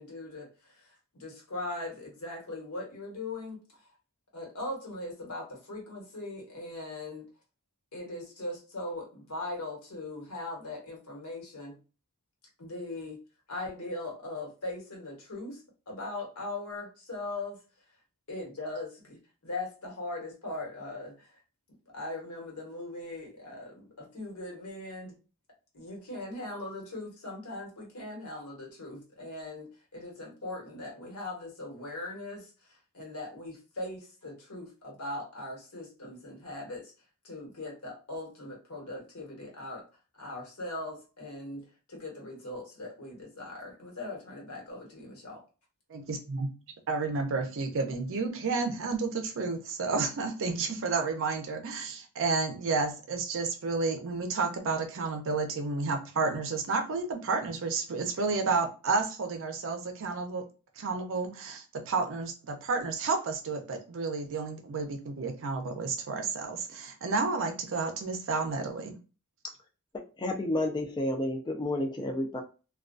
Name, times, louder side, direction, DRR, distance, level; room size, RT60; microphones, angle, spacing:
voice 1, 0.0-3.8 4.3-7.3 7.9-11.8 12.6-13.2 13.5-17.6 18.3-21.3 21.9-25.2 25.7-36.9 37.2-39.8 40.1-45.4, left 2 dB, 85° left, -1 dB, 1.1 m, -40 dB
voice 2, 45.9-46.5 46.9-60.4 60.8-69.0, right 4 dB, 60° right, 5 dB, 0.5 m, -31 dB
voice 3, 70.2-72.4, left 1 dB, 20° left, 3 dB, 0.3 m, -30 dB
2.3 x 2.2 x 2.4 m, 0.33 s
head